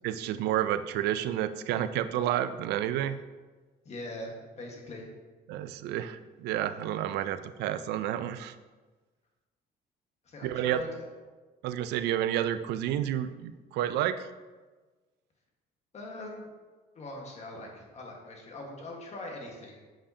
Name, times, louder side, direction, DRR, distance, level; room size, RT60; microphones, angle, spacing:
voice 1, 0.0-3.2 5.5-8.5 10.4-10.8 11.6-14.2, right 11 dB, 80° right, 12 dB, 0.4 m, -30 dB
voice 2, 3.8-5.1 10.2-11.1 15.9-16.5 16.9-19.8, left 1 dB, 40° left, 0 dB, 1.5 m, -42 dB
7.4 x 4.8 x 2.8 m, 1.3 s
cardioid pair, 110°, 17 cm